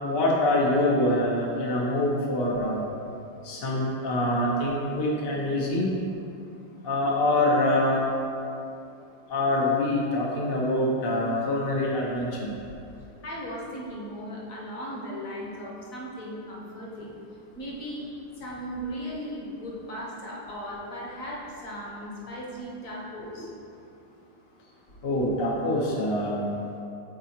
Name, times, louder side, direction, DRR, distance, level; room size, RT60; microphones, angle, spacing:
voice 1, 0.0-2.8 3.4-5.9 6.8-8.0 9.3-12.5 25.0-26.5, left 1 dB, 70° left, -4 dB, 0.5 m, -25 dB
voice 2, 13.2-17.1 17.6-18.1 18.4-23.5, equal, 50° left, -4 dB, 1.2 m, -37 dB
6.6 x 4.1 x 4.3 m, 2.6 s
omnidirectional pair, 2.3 m